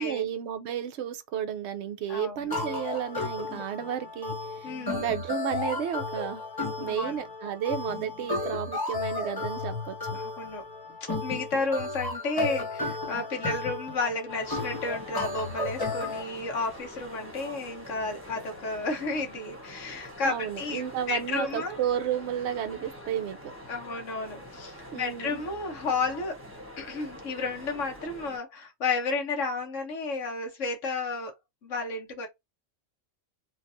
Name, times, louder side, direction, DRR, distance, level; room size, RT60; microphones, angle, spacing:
voice 1, 0.0-4.4 4.6-6.4 6.8-10.2 20.2-23.5 24.9-25.4, right 9 dB, 65° right, 0.8 m, -32 dB
voice 2, 2.1-2.7 4.6-5.1 6.9-7.2 10.1-10.6 11.2-21.8 23.7-26.4 26.8-31.3 31.6-32.3, left 3 dB, 70° left, 1.3 m, -32 dB
sound 1, 2.5-16.2, left 3 dB, 20° left, 0.8 m, -33 dB
sound 2, 14.3-28.4, equal, 10° right, 1.1 m, -45 dB
3.2 x 2.4 x 2.6 m
omnidirectional pair, 1.4 m